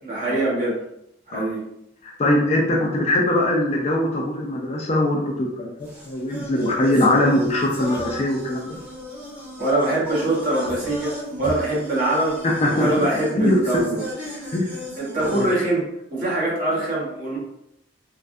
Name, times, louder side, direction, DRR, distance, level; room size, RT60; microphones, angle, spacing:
voice 1, 0.0-0.8 1.3-1.6 9.6-12.4 12.7-14.0 14.3-14.5 15.0-17.4, right 1 dB, 45° right, -6 dB, 1.1 m, -23 dB
voice 2, 2.0-8.8 12.4-13.1 13.3-13.8 14.5-14.7 15.3-15.5, left 1 dB, 35° left, -1 dB, 0.4 m, -21 dB
sound 1, 5.8-15.5, equal, 5° right, 0.9 m, -35 dB
3.4 x 2.2 x 2.5 m, 0.80 s
head